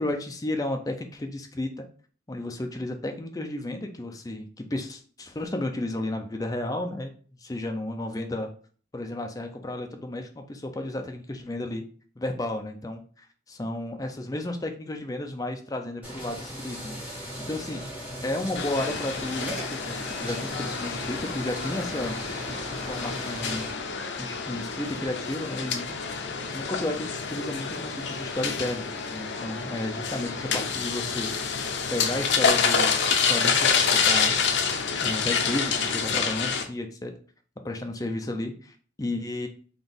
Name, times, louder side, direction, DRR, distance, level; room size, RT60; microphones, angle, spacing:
voice 1, 0.0-1.8 2.3-7.1 7.4-8.5 8.9-11.8 12.2-13.0 13.6-17.8 18.2-22.2 22.8-23.7 24.2-25.9 26.5-31.3 31.9-34.4 35.0-37.1 37.6-39.5, left 1 dB, 20° left, 4 dB, 0.4 m, -33 dB
sound 1, 16.0-23.7, equal, 10° right, 1.3 m, -38 dB
sound 2, 18.6-36.6, left 5 dB, 75° left, 0.6 m, -28 dB
3.9 x 2.6 x 3.4 m, 0.44 s
head